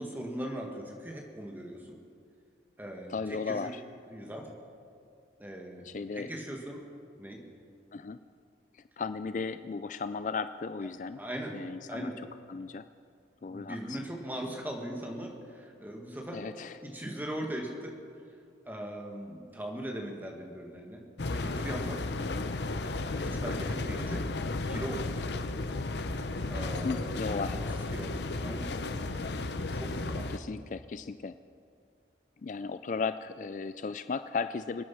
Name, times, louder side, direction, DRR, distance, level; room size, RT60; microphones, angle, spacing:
voice 1, 0.0-1.9 2.8-3.7 4.1-4.6 5.4-5.8 6.1-6.9 7.2-7.4 11.1-11.5 11.9-12.2 13.5-16.5 16.8-17.9 18.7-21.0 21.3-22.0 22.8-24.2 24.7-25.3 26.5-27.1 27.5-27.6 27.9-28.7 29.7-30.3, right 1 dB, 10° right, 1 dB, 1.9 m, -39 dB
voice 2, 3.1-3.8 5.8-6.3 7.9-8.2 8.7-11.2 11.5-12.1 12.5-12.9 13.4-14.1 16.3-16.8 22.2-22.5 26.8-27.6 30.3-31.4 32.4-34.8, left 4 dB, 45° left, 12 dB, 0.3 m, -35 dB
sound 1, 21.2-30.4, left 2 dB, 70° left, 0.8 m, -34 dB
25.5 x 9.5 x 6.0 m, 2.3 s
head